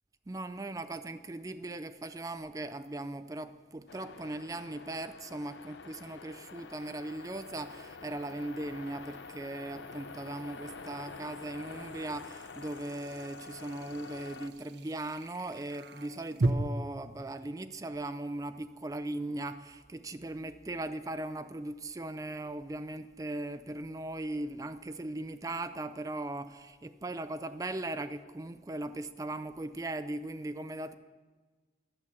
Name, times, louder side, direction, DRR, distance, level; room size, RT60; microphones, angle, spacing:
voice 1, 0.3-30.9, right 2 dB, 20° right, 11 dB, 0.4 m, -39 dB
sound 1, 2.8-2.9 6.4-16.5, right 2 dB, 70° right, 0.7 m, -41 dB
sound 2, 3.9-14.5, left 4 dB, 80° left, 0.5 m, -47 dB
11.0 x 6.0 x 8.3 m, 1.4 s
head